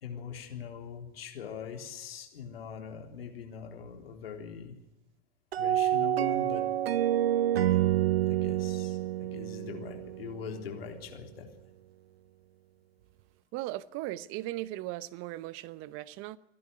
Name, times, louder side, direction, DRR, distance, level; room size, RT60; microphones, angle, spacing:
voice 1, 0.0-4.8 5.6-6.7 7.7-7.8 8.3-11.5, left 7 dB, 80° left, 3.8 m, -42 dB
sound 1, 5.5-10.7, right 12 dB, 85° right, 0.7 m, -28 dB
voice 2, 13.5-16.4, right 16 dB, 45° right, 0.8 m, -37 dB
27.5 x 11.0 x 9.7 m
hypercardioid pair, 95°, 30 cm